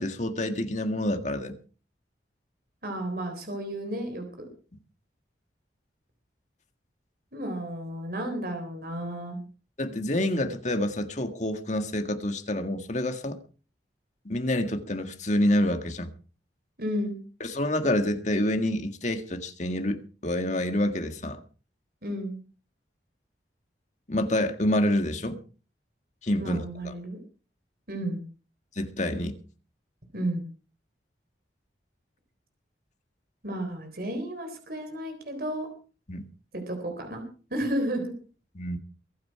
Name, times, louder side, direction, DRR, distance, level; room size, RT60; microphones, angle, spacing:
voice 1, 0.0-1.6 9.8-13.4 14.3-16.1 17.4-21.4 24.1-25.4 26.2-26.6 28.8-29.4 36.1-36.3 38.6-38.8, left 1 dB, 40° left, 7 dB, 1.8 m, -27 dB
voice 2, 2.8-4.5 7.3-9.4 16.8-17.2 22.0-22.4 26.4-27.2 27.9-28.2 30.1-30.5 33.4-35.7 36.5-37.2 37.5-38.1, right 1 dB, 55° right, 5 dB, 3.9 m, -32 dB
23.0 x 9.3 x 4.8 m, 0.38 s
head